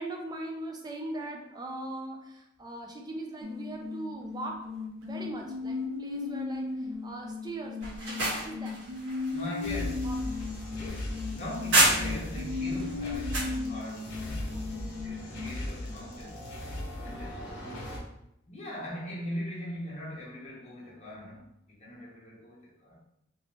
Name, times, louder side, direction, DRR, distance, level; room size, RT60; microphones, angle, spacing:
voice 1, 0.0-4.6 5.0-8.8 9.7-10.2 14.5-14.9, right 1 dB, 20° right, 1 dB, 0.4 m, -40 dB
sound 1, 3.4-15.5, left 3 dB, 85° right, 0.5 m, -36 dB
sound 2, 7.8-12.4 12.8-13.6, right 1 dB, 60° right, 1.5 m, -29 dB
voice 2, 9.3-10.0 10.7-14.7 15.0-17.4 18.4-23.0, equal, 35° left, -6 dB, 1.0 m, -41 dB
sound 3, 9.6-18.0, left 1 dB, 60° left, 0.8 m, -38 dB
3.0 x 2.9 x 3.0 m, 0.83 s
head